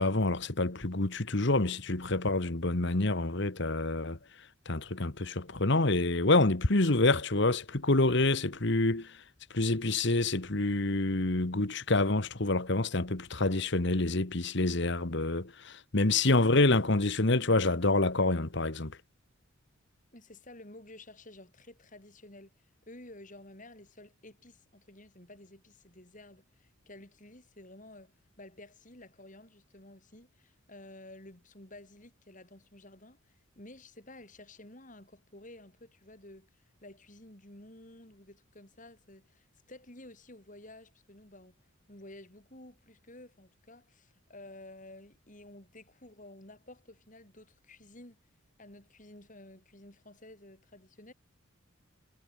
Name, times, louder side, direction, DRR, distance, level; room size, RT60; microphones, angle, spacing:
voice 1, 0.0-4.2 4.7-9.2 9.5-19.0, left 2 dB, 55° left, 1.6 m, -27 dB
voice 2, 20.1-48.2 48.6-51.1, left 1 dB, 40° left, 4.5 m, -52 dB
head